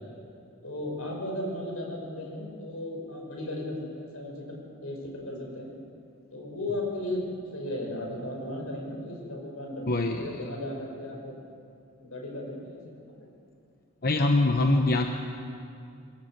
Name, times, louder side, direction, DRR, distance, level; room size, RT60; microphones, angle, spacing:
voice 1, 0.6-5.7 6.3-7.2 7.5-11.3 12.0-13.1, left 1 dB, 85° left, 0 dB, 5.8 m, -36 dB
voice 2, 9.9-10.2 14.0-15.1, left 2 dB, 45° left, 4 dB, 1.0 m, -23 dB
22.5 x 17.5 x 7.7 m, 2.4 s
head